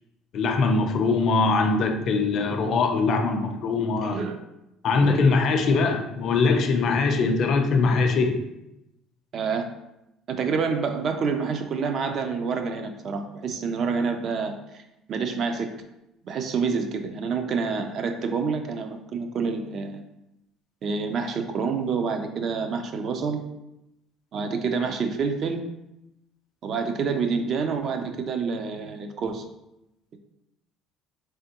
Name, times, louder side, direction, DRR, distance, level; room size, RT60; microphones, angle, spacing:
voice 1, 0.3-4.2 4.8-8.4, left 4 dB, 50° left, 5 dB, 0.5 m, -22 dB
voice 2, 4.0-4.4 5.0-5.2 9.3-9.7 10.3-14.8 15.1-15.7 16.2-20.0 20.8-23.4 24.3-25.6 26.6-29.4, right 5 dB, 45° right, 6 dB, 0.5 m, -27 dB
3.6 x 3.4 x 2.9 m, 0.90 s
cardioid pair, 130°, 0 cm